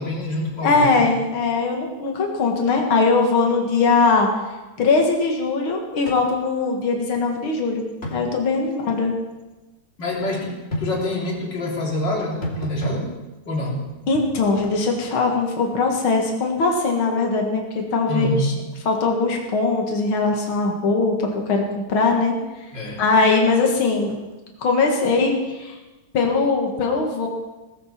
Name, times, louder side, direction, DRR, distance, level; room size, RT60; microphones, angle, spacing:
voice 1, 0.0-1.1 10.0-13.1 13.4-13.9 18.1-18.5 22.7-23.0, left 1 dB, 55° left, -3 dB, 4.1 m, -26 dB
voice 2, 0.6-4.3 4.8-7.8 8.1-9.1 14.1-18.5 18.9-22.4 23.0-24.2 24.6-25.3 25.6-25.7 26.1-27.3, left 3 dB, 75° left, 1 dB, 2.8 m, -20 dB
sound 1, 6.1-6.2 6.5-6.6 8.0-8.2 10.7-10.9 12.4-13.0 14.6-14.8, left 1 dB, 30° left, 2.9 m, -29 dB
19.0 x 14.5 x 4.5 m, 1.1 s
omnidirectional pair, 2.3 m